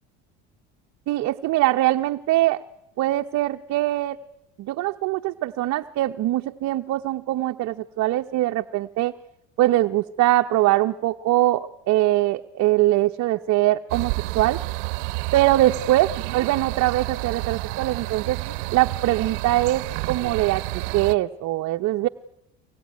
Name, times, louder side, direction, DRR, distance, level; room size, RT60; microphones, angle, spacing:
voice 1, 1.1-2.6 3.0-4.2 4.6-9.1 9.6-14.6 15.3-18.4 18.7-22.1, right 16 dB, 55° right, 5 dB, 0.9 m, -22 dB
sound 1, 13.9-21.1, right 21 dB, 75° right, 0.9 m, -30 dB
23.5 x 21.5 x 9.5 m, 0.86 s
supercardioid pair, 100°, 34 cm